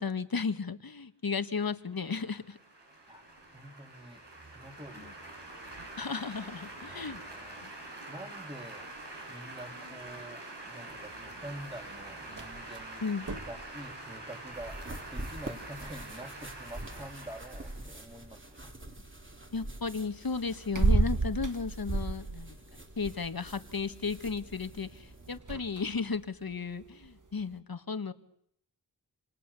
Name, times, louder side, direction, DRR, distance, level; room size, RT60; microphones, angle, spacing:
voice 1, 0.0-2.6 5.0-5.1 6.0-7.2 7.6-7.7 13.0-13.3 19.5-22.6 23.0-28.1, left 5 dB, 60° left, 11 dB, 1.5 m, -34 dB
sound 1, 1.9-18.6, right 2 dB, 85° right, 6.5 m, -46 dB
voice 2, 3.5-5.1 6.9-7.7 8.1-8.9 9.3-13.1 13.4-18.7, right 1 dB, 15° right, 1 dB, 2.8 m, -47 dB
sound 2, 10.9-27.6, right 3 dB, 50° right, 1.9 m, -37 dB
sound 3, 14.5-25.4, right 1 dB, 30° right, 3.0 m, -46 dB
28.0 x 27.5 x 6.8 m, 0.70 s
wide cardioid pair, 80°, 41 cm